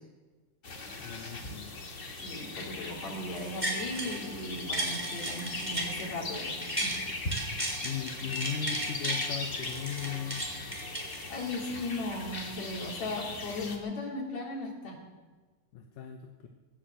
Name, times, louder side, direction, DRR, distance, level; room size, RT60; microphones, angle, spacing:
sound 1, 0.6-13.8, left 2 dB, 30° left, 1.6 m, -39 dB
voice 1, 1.0-1.7 7.8-10.5 15.7-16.5, left 8 dB, 80° left, 3 dB, 2.5 m, -37 dB
voice 2, 2.2-7.0 11.3-15.0, left 2 dB, 55° left, -2 dB, 4.5 m, -37 dB
sound 2, 3.4-4.2 4.6-7.0 7.3-9.3 9.6-11.6 12.1-12.2, right 1 dB, 5° right, 3.2 m, -35 dB
17.5 x 10.5 x 7.8 m, 1.3 s
omnidirectional pair, 3.7 m